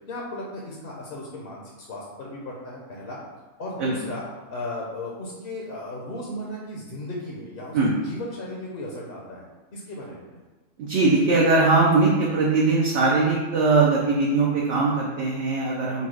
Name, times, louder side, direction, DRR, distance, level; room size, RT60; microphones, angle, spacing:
voice 1, 0.1-1.6 1.9-3.2 3.6-4.2 4.5-9.5 9.7-10.4, left 1 dB, 55° left, -3 dB, 0.8 m, -35 dB
voice 2, 10.8-16.1, right 3 dB, 65° right, -4 dB, 0.9 m, -20 dB
4.2 x 2.3 x 4.6 m, 1.2 s
omnidirectional pair, 1.4 m